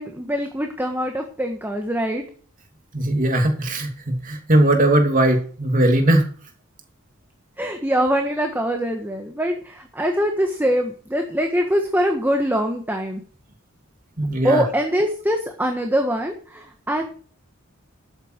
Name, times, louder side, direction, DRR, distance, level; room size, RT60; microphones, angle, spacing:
voice 1, 0.0-2.2 7.6-13.2 14.4-17.0, equal, 10° right, 3 dB, 1.5 m, -23 dB
voice 2, 2.9-6.3 14.2-14.6, right 1 dB, 40° right, 4 dB, 2.8 m, -19 dB
13.0 x 8.9 x 4.6 m, 0.43 s
head